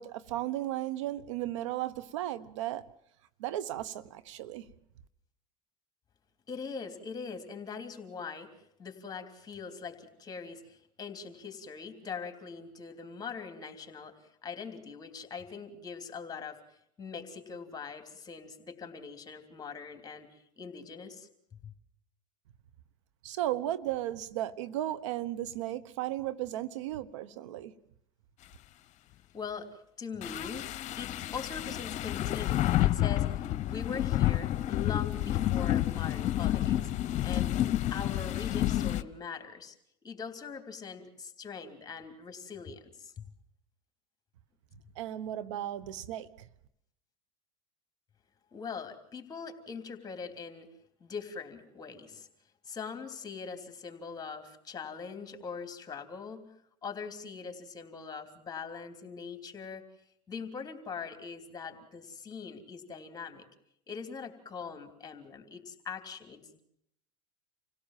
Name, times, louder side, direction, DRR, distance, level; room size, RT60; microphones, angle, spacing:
voice 1, 0.0-2.8 3.4-4.6 23.2-27.7 45.0-46.5, right 13 dB, 80° right, 15 dB, 1.2 m, -35 dB
voice 2, 6.5-8.5 8.8-14.1 14.4-21.3 21.6-21.7 29.3-29.7 30.0-39.7 40.0-43.2 48.5-50.7 51.0-52.3 52.6-56.5 56.8-59.8 60.3-63.5 63.9-66.6, left 5 dB, 25° left, 7 dB, 3.3 m, -42 dB
sound 1, 30.2-39.0, left 13 dB, 50° left, 1.0 m, -29 dB
27.5 x 17.0 x 7.5 m, 0.75 s
supercardioid pair, 95°, 16 cm